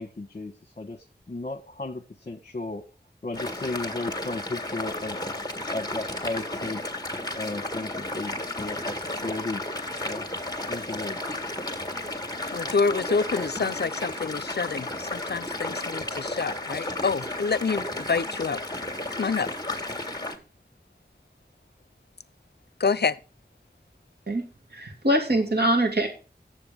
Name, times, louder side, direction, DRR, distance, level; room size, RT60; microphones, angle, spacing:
voice 1, 0.0-2.8 3.2-5.2 5.7-6.9 7.3-9.7 10.0-10.3 10.7-11.2, left 2 dB, 45° left, 1.2 m, -34 dB
sound 1, 3.3-20.4, left 1 dB, 20° left, 1.7 m, -33 dB
voice 2, 12.5-18.6 19.2-19.5 22.8-23.2, left 4 dB, 70° left, 0.5 m, -27 dB
voice 3, 24.7-26.1, right 1 dB, 70° right, 2.4 m, -23 dB
9.0 x 7.5 x 5.1 m
wide cardioid pair, 55°, 18 cm